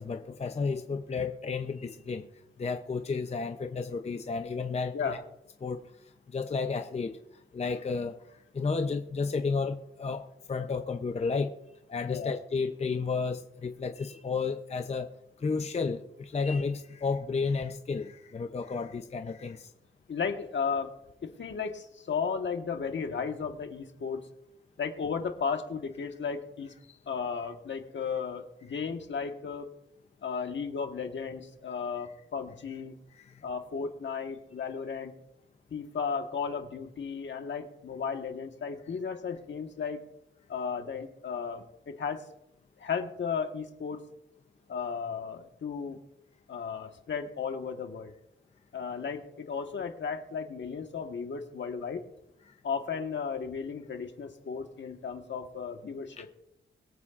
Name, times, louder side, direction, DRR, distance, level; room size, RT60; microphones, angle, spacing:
voice 1, 0.0-2.3 2.6-5.2 5.6-5.8 6.3-7.2 7.5-8.2 8.5-11.5 11.9-15.1 15.4-19.7 33.2-33.4 56.2-56.3, left 4 dB, 30° left, 7 dB, 0.6 m, -32 dB
voice 2, 20.1-20.9 21.2-24.2 24.8-26.7 27.1-29.7 30.2-33.0 33.4-35.1 35.7-40.0 40.5-42.3 42.8-44.0 44.7-46.0 46.5-48.1 48.7-52.0 52.6-56.3, left 6 dB, 60° left, 5 dB, 1.4 m, -34 dB
22.5 x 8.4 x 2.5 m, 0.86 s
wide cardioid pair, 95°, 21 cm